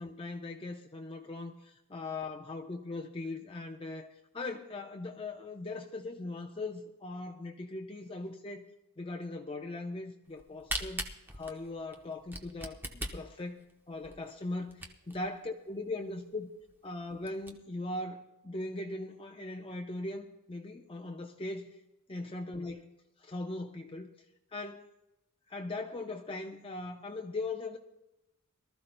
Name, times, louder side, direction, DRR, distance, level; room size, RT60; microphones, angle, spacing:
voice 1, 0.0-8.7 9.0-16.5 16.8-21.7 22.1-22.9 23.2-24.1 24.5-24.8 25.5-27.8, left 2 dB, 25° left, 2 dB, 0.7 m, -40 dB
Camera, 10.3-15.3 15.8-15.9 16.1-16.2 16.7-16.8 17.1-17.5, right 1 dB, 10° right, 0.9 m, -40 dB
23.0 x 13.5 x 2.2 m, 0.94 s
head